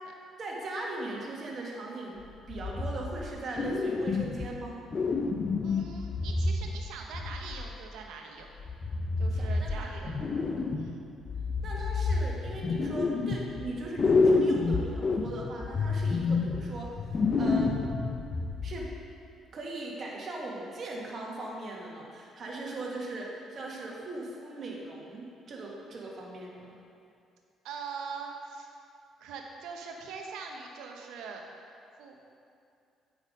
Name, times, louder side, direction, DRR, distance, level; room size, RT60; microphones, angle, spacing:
voice 1, 0.4-4.8 9.3-9.9 10.6-10.7 11.6-17.8 18.6-18.9 19.5-26.7, right 2 dB, 50° right, -2 dB, 1.8 m, -39 dB
sound 1, 2.5-3.3 3.6-4.6 4.9-7.8 8.6-10.9 11.3-13.7 14.0-18.9, left 3 dB, 40° left, 0.6 m, -29 dB
voice 2, 5.6-8.5 9.2-10.1 10.7-11.0 27.6-28.7 29.2-31.4 32.0-32.3, right 5 dB, 80° right, 2 dB, 1.0 m, -42 dB
8.2 x 5.9 x 5.2 m, 2.5 s
supercardioid pair, 65°, 0 cm